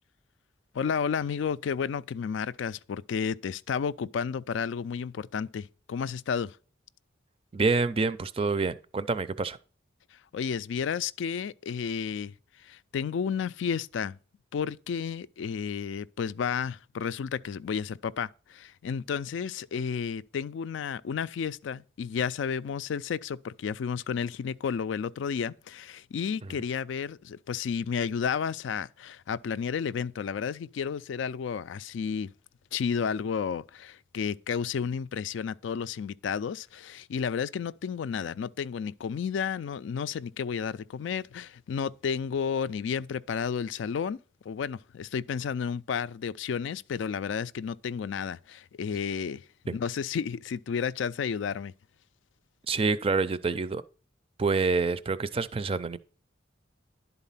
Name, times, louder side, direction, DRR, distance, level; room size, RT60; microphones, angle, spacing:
voice 1, 0.7-6.6 10.3-12.3 12.6-14.2 14.5-32.3 32.7-44.2 44.5-51.7, left 6 dB, 75° left, 0.3 m, -32 dB
voice 2, 7.5-9.6 26.4-26.5 49.7-49.8 52.7-53.8 54.4-56.0, right 4 dB, 30° right, 0.4 m, -27 dB
11.0 x 4.1 x 5.5 m
head